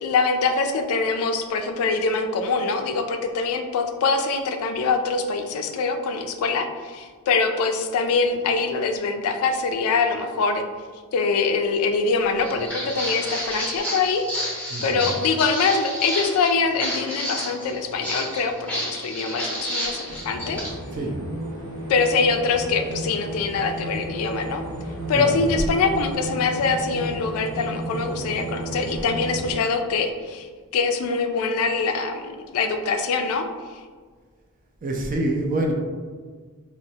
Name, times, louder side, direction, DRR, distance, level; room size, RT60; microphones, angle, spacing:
voice 1, 0.0-10.6 11.1-14.3 14.8-20.6 21.9-24.6 25.1-30.5 30.7-33.4, left 4 dB, 70° left, 6 dB, 0.3 m, -24 dB
Walk footsteps, 12.4-20.7, equal, 5° left, 0.7 m, -30 dB
voice 2, 14.7-15.1 20.9-21.2 25.1-25.5 34.8-35.7, right 1 dB, 40° right, 1 dB, 0.4 m, -26 dB
sound 1, 20.1-29.5, right 1 dB, 60° right, 1.1 m, -33 dB
4.0 x 2.0 x 2.7 m, 1.5 s
head